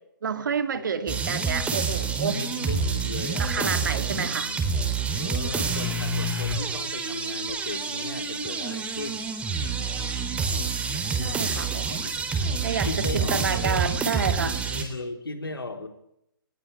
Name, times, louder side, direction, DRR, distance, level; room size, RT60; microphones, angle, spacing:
voice 1, 0.2-2.4 3.4-4.5 11.1-12.0 12.6-14.6, right 6 dB, 60° right, 9 dB, 2.9 m, -29 dB
sound 1, 1.1-14.8, right 4 dB, 10° right, 3.5 m, -28 dB
voice 2, 2.3-4.1 4.4-4.7 5.1-9.3 12.3-12.6 12.8-13.9 14.7-15.9, left 2 dB, 80° left, 6 dB, 4.4 m, -37 dB
20.5 x 20.5 x 9.8 m, 0.77 s
figure-of-eight pair, 130°, 12 cm